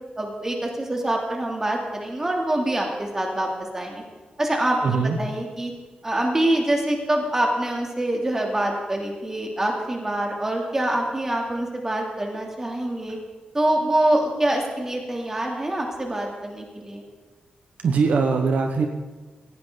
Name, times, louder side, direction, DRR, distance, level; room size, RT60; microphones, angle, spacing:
voice 1, 0.2-4.0 4.4-5.7 6.0-13.2 13.5-17.0, right 1 dB, 20° right, 0 dB, 3.0 m, -25 dB
voice 2, 4.8-5.2 17.8-18.9, right 5 dB, 65° right, 4 dB, 1.2 m, -21 dB
19.0 x 15.5 x 4.0 m, 1.3 s
wide cardioid pair, 135°, 3 cm